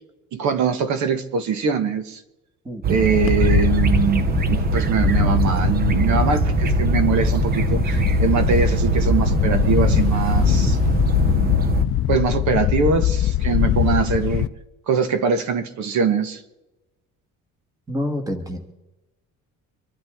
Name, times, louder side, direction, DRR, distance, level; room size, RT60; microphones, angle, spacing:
voice 1, 0.3-2.2 2.9-10.8 12.1-14.5 14.9-16.4, right 5 dB, 65° right, 9 dB, 1.3 m, -22 dB
sound 1, 2.8-11.8, right 8 dB, 30° right, 0.6 m, -23 dB
Wind, 3.2-14.5, left 13 dB, 45° left, 0.5 m, -22 dB
voice 2, 17.9-18.6, left 1 dB, 10° right, 5 dB, 1.5 m, -27 dB
25.5 x 12.0 x 3.6 m, 0.97 s
cardioid pair, 180°, 31 cm